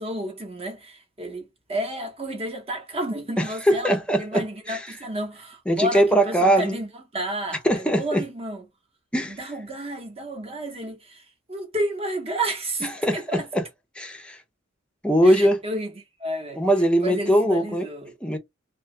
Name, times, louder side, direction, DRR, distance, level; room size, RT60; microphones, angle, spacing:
voice 1, 0.0-8.6 9.2-13.5 15.2-15.9 16.2-16.6 17.0-18.1, right 1 dB, 30° right, 0.9 m, -31 dB
voice 2, 3.4-5.0 5.7-6.8 7.6-8.2 9.1-9.4 13.0-13.7 14.0-14.4 15.0-15.6 16.6-17.9 18.2-18.4, equal, 5° left, 0.6 m, -21 dB
2.8 x 2.3 x 3.1 m
head